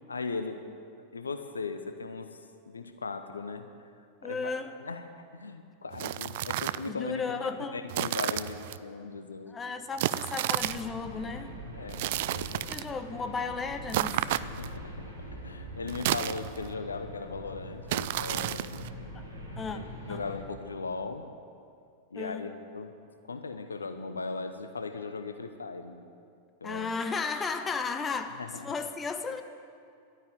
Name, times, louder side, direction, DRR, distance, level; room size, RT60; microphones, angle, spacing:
voice 1, 0.1-0.6 1.1-2.4 2.7-3.7 4.2-4.5 4.8-5.0 5.3-9.6 11.7-12.0 12.3-12.7 14.3-15.1 15.4-18.9 19.7-21.2 22.1-22.9 23.3-26.1 26.6-26.9 28.4-28.7, left 4 dB, 75° left, 8 dB, 0.9 m, -38 dB
voice 2, 4.2-4.7 6.9-7.8 9.5-11.5 12.7-14.2 19.1-19.2 19.6-19.8 20.1-20.3 22.1-22.5 26.6-29.4, left 4 dB, 20° left, 8 dB, 1.0 m, -34 dB
sound 1, 5.9-6.9 7.9-8.8 10.0-10.9 11.9-12.9 13.9-14.8 15.9-16.7 17.9-18.9, right 14 dB, 50° right, 0.4 m, -31 dB
sound 2, 10.5-20.5, equal, 75° right, 3.0 m, -43 dB
12.0 x 9.5 x 9.6 m, 2.4 s
figure-of-eight pair, 90°, 0 cm